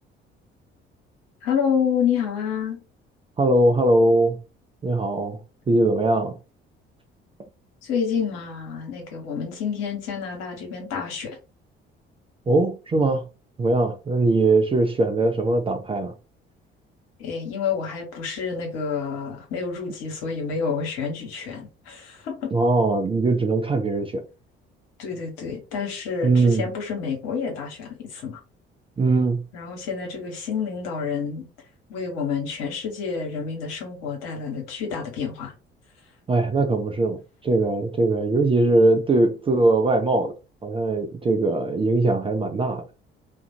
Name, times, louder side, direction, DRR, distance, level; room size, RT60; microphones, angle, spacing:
voice 1, 1.4-2.8 7.8-11.4 17.2-22.5 25.0-28.4 29.5-31.4 31.9-35.5, left 6 dB, 60° left, 1.1 m, -28 dB
voice 2, 3.4-4.4 4.8-5.4 5.7-6.3 12.5-13.2 13.6-16.1 22.5-24.2 26.2-26.6 29.0-29.4 36.3-40.3 40.6-42.9, right 2 dB, 20° right, 0.4 m, -21 dB
2.4 x 2.1 x 2.7 m
figure-of-eight pair, 50°, 30 cm